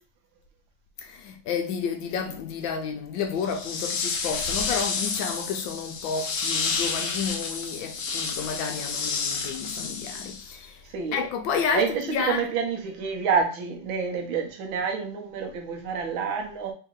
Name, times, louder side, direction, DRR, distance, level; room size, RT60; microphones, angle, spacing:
voice 1, 1.0-10.7 11.1-12.4, left 6 dB, 85° left, 1.4 m, -31 dB
sound 1, 3.4-10.7, left 5 dB, 65° left, 0.9 m, -30 dB
voice 2, 10.8-11.3 11.7-16.7, right 6 dB, 85° right, 1.6 m, -28 dB
3.9 x 2.8 x 3.6 m
omnidirectional pair, 2.1 m